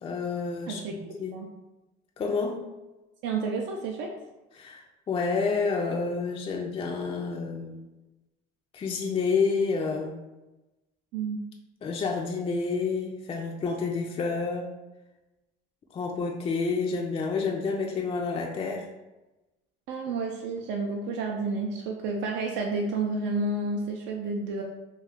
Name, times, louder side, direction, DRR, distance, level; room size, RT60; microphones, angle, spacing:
voice 1, 0.0-1.3 2.2-2.6 4.5-7.8 8.7-10.2 11.8-14.7 15.9-18.9, left 4 dB, 30° left, 1 dB, 0.4 m, -29 dB
voice 2, 0.7-1.5 3.2-4.1 11.1-11.4 19.9-24.6, right 3 dB, 65° right, 1 dB, 0.4 m, -30 dB
2.4 x 2.3 x 3.5 m, 1.0 s
supercardioid pair, 85°, 20 cm